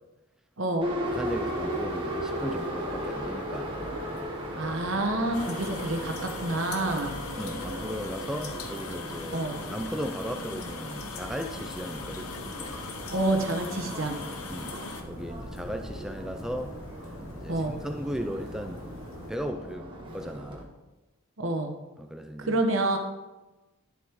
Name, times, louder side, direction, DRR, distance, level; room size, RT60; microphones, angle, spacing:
voice 1, 0.6-0.9 4.6-7.1 9.3-9.5 13.1-14.2 17.5-17.8 21.4-21.7 22.4-23.0, right 2 dB, 65° right, 3 dB, 1.2 m, -28 dB
Subway metro underground, 0.8-20.6, right 1 dB, 25° right, 1.2 m, -37 dB
sound 1, 1.0-19.3, left 1 dB, 70° left, 1.1 m, -46 dB
voice 2, 1.1-3.7 7.4-12.3 14.5-14.8 15.1-16.8 17.3-18.8 19.3-20.7 22.0-22.6, equal, 5° right, 6 dB, 0.3 m, -36 dB
sound 2, 5.3-15.0, left 4 dB, 85° left, 0.8 m, -40 dB
11.0 x 7.0 x 3.0 m, 1.1 s
head